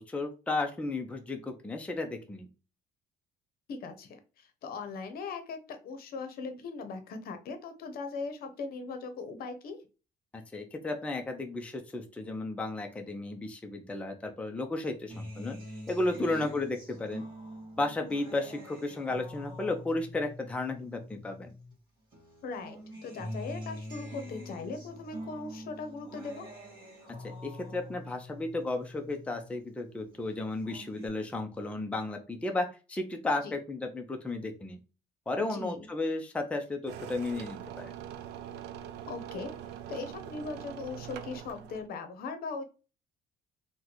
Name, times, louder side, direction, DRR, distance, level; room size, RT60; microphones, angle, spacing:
voice 1, 0.1-2.5 10.3-15.6 15.9-17.2 17.8-21.5 27.4-34.8 35.3-37.9, left 2 dB, 5° left, 4 dB, 0.5 m, -34 dB
voice 2, 3.7-9.8 16.3-16.5 22.4-26.5 33.4-33.5 35.4-35.9 39.1-39.5 39.9-42.6, left 4 dB, 60° left, 8 dB, 0.7 m, -39 dB
Acoustic guitar, 15.1-21.7 22.1-29.7 30.1-31.1, left 1 dB, 25° right, 1.7 m, -45 dB
sound 1, 36.9-41.9, right 10 dB, 80° right, 0.4 m, -43 dB
3.8 x 2.2 x 2.9 m, 0.33 s
cardioid pair, 110°, 17 cm